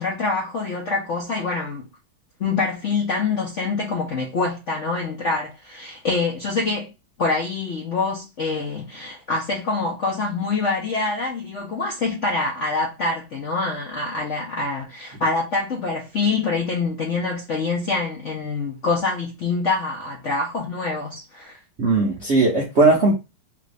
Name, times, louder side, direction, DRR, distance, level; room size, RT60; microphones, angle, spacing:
voice 1, 0.0-1.9 2.4-6.9 7.2-21.6, left 3 dB, 60° left, 0.8 m, -25 dB
voice 2, 21.8-23.1, right 3 dB, 60° right, 0.7 m, -18 dB
3.4 x 2.5 x 3.2 m
omnidirectional pair, 2.2 m